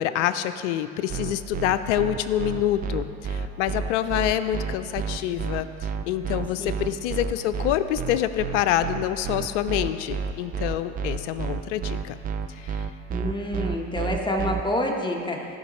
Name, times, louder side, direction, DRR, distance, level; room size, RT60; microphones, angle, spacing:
voice 1, 0.0-12.2 12.6-12.9, left 11 dB, 65° left, 12 dB, 0.5 m, -26 dB
sound 1, 1.1-14.6, right 6 dB, 25° right, 0.4 m, -30 dB
voice 2, 13.1-15.6, left 1 dB, 10° left, 1 dB, 1.2 m, -28 dB
14.5 x 5.2 x 3.1 m, 2.4 s
hypercardioid pair, 80°, 38 cm